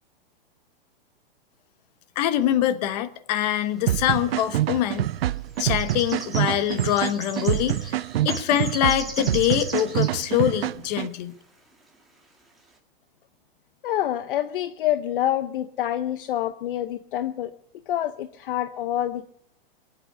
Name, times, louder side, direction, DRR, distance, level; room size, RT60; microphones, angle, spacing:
voice 1, 2.1-5.1 5.6-8.0 8.2-11.4, left 12 dB, 45° left, 13 dB, 1.2 m, -24 dB
sound 1, 3.9-4.0 4.8-5.0 5.3-10.3 10.5-10.6 11.1-11.2 11.9-12.0 12.5-12.7, right 2 dB, ahead, 2.2 m, -39 dB
sound 2, 3.9-11.1, right 13 dB, 80° right, 0.6 m, -26 dB
voice 2, 13.8-17.6 17.9-19.3, left 12 dB, 60° left, 13 dB, 0.7 m, -27 dB
22.5 x 8.5 x 6.7 m, 0.74 s
supercardioid pair, 160°, 29 cm